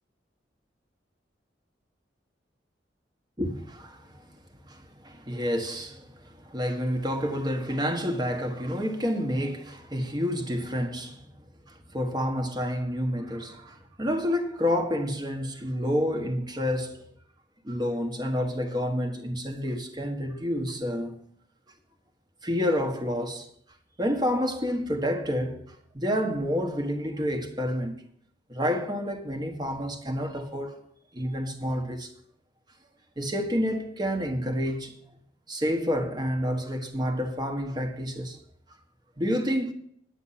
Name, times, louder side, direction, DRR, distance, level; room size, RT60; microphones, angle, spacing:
voice 1, 3.4-4.3 4.7-11.2 11.7-17.0 17.6-21.1 22.4-23.5 24.0-25.6 25.9-27.9 28.5-30.8 31.1-32.1 33.2-35.0 35.5-38.4 39.2-39.7, equal, 25° right, 1.3 m, -29 dB
9.9 x 8.9 x 5.7 m
head